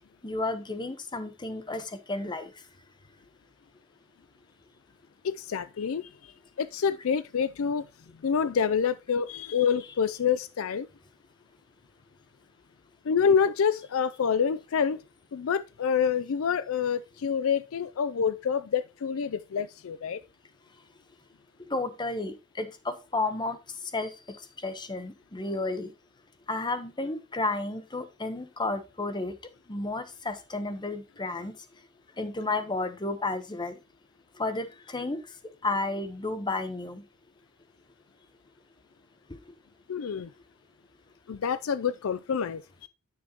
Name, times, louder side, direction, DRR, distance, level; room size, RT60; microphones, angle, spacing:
voice 1, 0.2-2.6 21.7-25.9 26.5-29.4 29.7-31.7 32.2-33.8 34.3-37.0 39.5-39.6, left 2 dB, 20° left, 0.9 m, -32 dB
voice 2, 5.2-6.3 6.6-7.9 8.2-10.9 13.0-15.0 15.3-20.2 39.9-40.3 41.3-42.9, left 7 dB, 65° left, 0.4 m, -27 dB
9.8 x 6.4 x 2.9 m
head